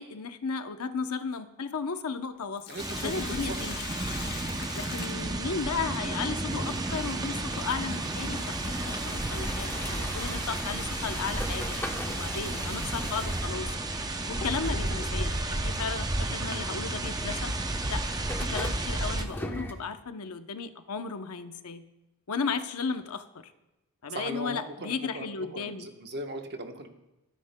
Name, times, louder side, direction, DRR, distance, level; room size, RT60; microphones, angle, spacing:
voice 1, 0.0-3.9 4.7-13.8 14.3-17.5 17.9-18.1 18.4-21.8 22.3-23.5 24.0-25.9, left 5 dB, 75° left, 9 dB, 0.7 m, -35 dB
Sink (filling or washing), 2.3-6.0 8.4-8.5 10.3-10.5 11.0-11.1 11.9-12.1 12.8-12.9 13.5-15.4, left 6 dB, 45° left, 0.9 m, -43 dB
voice 2, 2.7-3.6 24.1-25.3 25.5-26.9, right 2 dB, 50° right, 4 dB, 1.1 m, -38 dB
sound 1, 2.8-19.3, right 2 dB, 15° right, 0.6 m, -32 dB
sound 2, 6.4-19.7, left 1 dB, 10° left, 0.9 m, -38 dB
24.5 x 9.9 x 2.2 m, 0.96 s
head